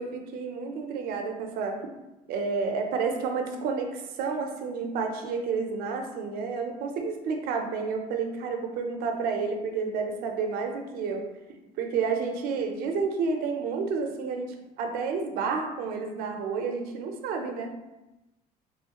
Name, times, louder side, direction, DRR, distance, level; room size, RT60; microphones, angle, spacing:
voice 1, 0.0-1.8 2.3-11.3 11.8-17.7, right 5 dB, 75° right, 4 dB, 0.5 m, -30 dB
3.1 x 3.0 x 2.8 m, 1.0 s
cardioid pair, 165°, 15 cm